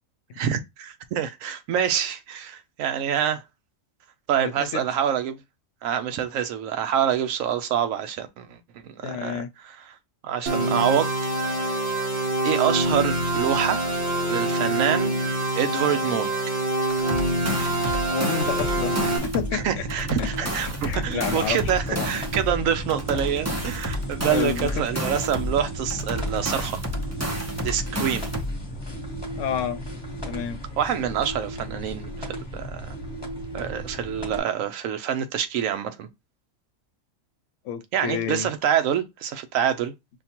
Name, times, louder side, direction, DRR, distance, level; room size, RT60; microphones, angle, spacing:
voice 1, 0.3-3.4 4.3-5.4 5.8-8.6 8.8-10.0 10.2-11.1 11.6-11.8 12.4-13.8 14.3-16.3 19.5-26.8 27.6-28.3 30.8-33.0 33.5-36.1 37.9-39.9, right 9 dB, 75° right, 1.0 m, -26 dB
voice 2, 4.4-4.8 9.0-9.5 18.1-19.7 20.2-20.3 20.8-22.1 24.3-24.9 29.4-29.8 30.2-30.6 37.6-38.5, left 8 dB, 70° left, 0.9 m, -29 dB
sound 1, 10.5-19.2, right 1 dB, 45° right, 1.4 m, -25 dB
sound 2, 16.9-19.6 19.9-22.6 22.9-25.6 25.9-28.6, equal, 20° right, 0.4 m, -31 dB
sound 3, 18.4-34.4, right 1 dB, 20° left, 1.0 m, -34 dB
5.5 x 2.3 x 2.8 m
omnidirectional pair, 1.4 m